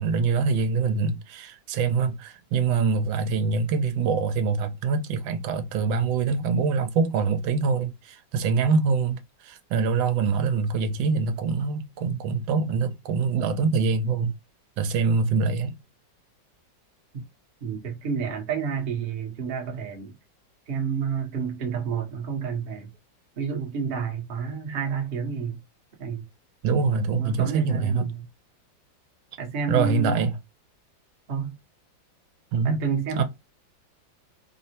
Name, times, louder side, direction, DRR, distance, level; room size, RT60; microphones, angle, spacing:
voice 1, 0.0-14.3 14.8-15.8 26.6-28.1 29.7-30.3 32.5-32.8 33.2-33.3, right 5 dB, 90° right, 1.3 m, -24 dB
voice 2, 17.6-20.1 20.7-22.9 23.4-25.6 26.0-26.2 27.1-28.2 29.4-30.2 31.3-31.6 32.6-33.2, right 6 dB, 50° right, 0.7 m, -30 dB
3.5 x 2.0 x 2.8 m
omnidirectional pair, 2.1 m